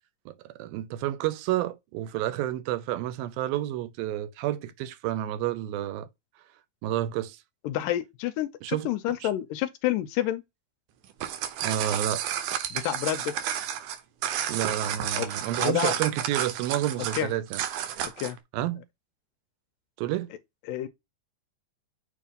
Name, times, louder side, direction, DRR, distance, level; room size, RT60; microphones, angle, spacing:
voice 1, 0.3-6.1 6.8-7.4 8.6-8.9 9.2-9.3 11.6-12.2 14.5-17.6 18.5-18.8 20.0-20.3, right 13 dB, 90° right, 2.6 m, -30 dB
voice 2, 7.6-10.4 12.7-13.3 15.1-16.0 17.1-17.3 18.0-18.4 20.7-20.9, left 12 dB, 80° left, 2.1 m, -29 dB
sound 1, 11.0-18.4, right 10 dB, 70° right, 2.2 m, -31 dB
6.9 x 2.7 x 5.2 m
omnidirectional pair, 4.1 m